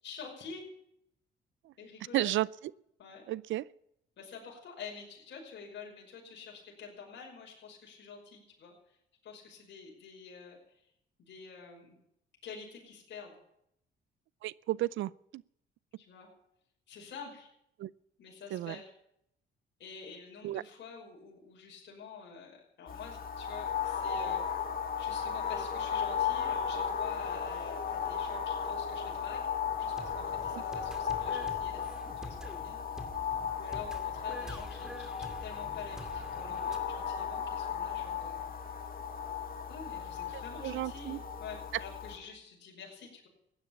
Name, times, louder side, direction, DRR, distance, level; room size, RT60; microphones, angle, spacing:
voice 1, 0.0-0.6 1.8-2.3 3.0-3.2 4.2-8.7 9.2-10.8 11.2-12.0 12.4-13.4 16.0-16.3 16.9-17.5 18.2-18.9 19.8-24.4 25.0-29.5 29.8-32.8 33.6-38.4 39.7-43.3, left 6 dB, 65° left, -2 dB, 5.7 m, -48 dB
voice 2, 2.1-2.5 3.3-3.6 14.4-15.4 17.8-17.9 18.5-18.8 20.4-20.6 30.5-30.6 40.3-41.2, right 15 dB, 75° right, 22 dB, 0.5 m, -33 dB
sound 1, 22.9-42.2, left 7 dB, 45° left, 2.6 m, -35 dB
sound 2, 29.7-36.8, equal, 5° right, 2.3 m, -47 dB
15.5 x 9.8 x 8.4 m, 0.75 s
cardioid pair, 90°, 20 cm